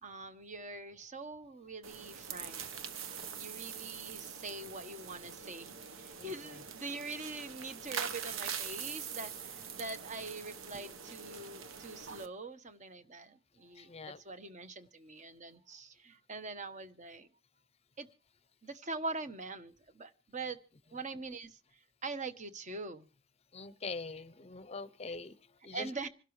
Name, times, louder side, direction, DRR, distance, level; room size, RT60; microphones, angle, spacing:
voice 1, 0.0-2.6 3.4-13.9 14.2-17.3 18.0-18.1 18.6-20.6 20.9-21.6 22.0-23.1 25.7-26.1, right 3 dB, 35° right, 1.2 m, -43 dB
sound 1, 1.8-12.3, right 7 dB, 70° right, 1.2 m, -43 dB
voice 2, 6.2-6.6 13.7-14.2 23.5-25.9, left 4 dB, 30° left, 0.7 m, -44 dB
26.5 x 12.5 x 3.2 m
head